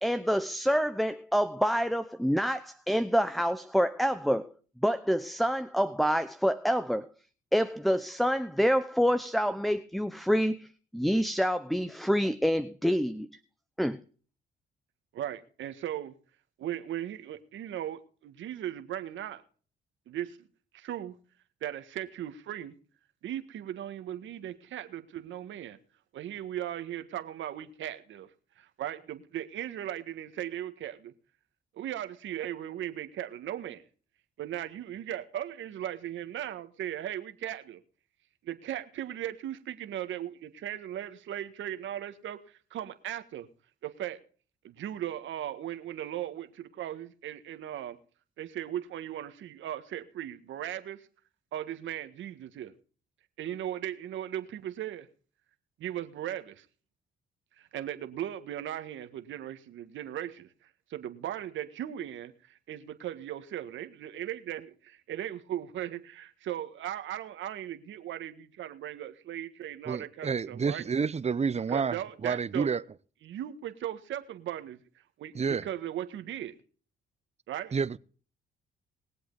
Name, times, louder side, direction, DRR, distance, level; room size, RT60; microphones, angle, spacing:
voice 1, 0.0-4.5 4.8-7.1 7.5-10.7 10.9-13.3 13.8-14.0, equal, ahead, 0.8 m, -27 dB
voice 2, 15.1-16.1 16.6-19.4 20.1-20.4 20.7-21.1 21.6-22.7 23.2-25.8 26.1-28.3 28.6-31.1 31.7-33.8 34.4-37.8 38.4-43.5 43.8-44.2 44.6-48.0 48.4-51.1 51.5-52.7 53.4-55.1 55.8-56.6 57.6-70.8 71.7-72.8 73.2-76.5 77.5-77.8, right 11 dB, 75° right, 1.6 m, -38 dB
voice 3, 69.9-72.8 75.3-75.7 77.7-78.0, right 5 dB, 35° right, 0.8 m, -29 dB
21.5 x 7.9 x 4.0 m
supercardioid pair, 65°, 20 cm